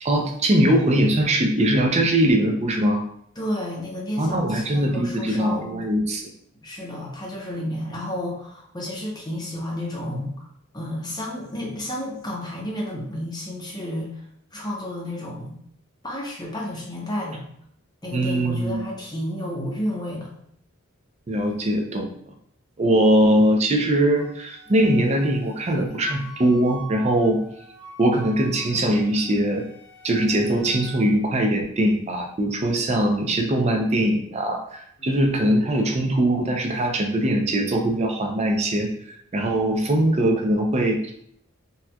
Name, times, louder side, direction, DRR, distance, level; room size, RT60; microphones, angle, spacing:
voice 1, 0.0-3.0 4.2-6.3 18.1-18.8 21.3-22.1 22.8-27.4 28.0-29.7 30.0-38.9 39.3-41.1, right 1 dB, 30° right, 3 dB, 0.4 m, -21 dB
voice 2, 3.4-5.8 6.6-10.5 10.7-14.2 14.5-15.6 16.0-17.4 18.0-20.4 35.0-35.2, left 1 dB, 20° left, -3 dB, 0.7 m, -31 dB
Wind instrument woodwind instrument, 24.2-31.0, right 2 dB, 70° right, 0.9 m, -45 dB
4.1 x 2.3 x 2.2 m, 0.68 s
head